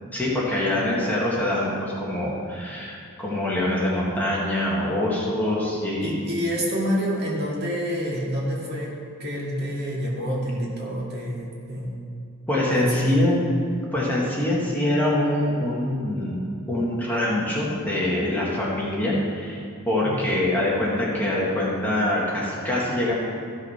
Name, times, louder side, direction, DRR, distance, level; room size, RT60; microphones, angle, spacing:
voice 1, 0.1-6.2 12.5-13.4 13.9-19.6 19.9-23.1, left 1 dB, 10° left, -6 dB, 1.8 m, -24 dB
voice 2, 6.0-8.9 9.2-12.0 12.7-13.2 20.0-20.2, equal, 50° right, -3 dB, 2.2 m, -27 dB
14.0 x 6.5 x 5.7 m, 2.4 s
head